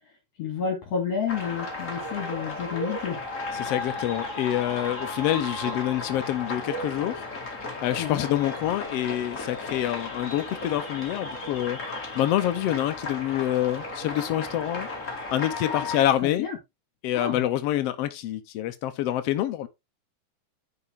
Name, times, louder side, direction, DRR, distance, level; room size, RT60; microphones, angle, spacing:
voice 1, 0.4-3.2 8.0-8.2 15.7-15.9 16.2-16.6 17.1-17.4, left 7 dB, 55° left, 3.0 m, -30 dB
sound 1, 1.3-16.1, left 2 dB, 25° left, 2.0 m, -34 dB
voice 2, 3.5-7.2 7.8-11.8 12.1-14.9 15.3-16.5 17.0-19.7, left 13 dB, 85° left, 1.4 m, -27 dB
9.8 x 6.1 x 3.6 m
omnidirectional pair, 3.9 m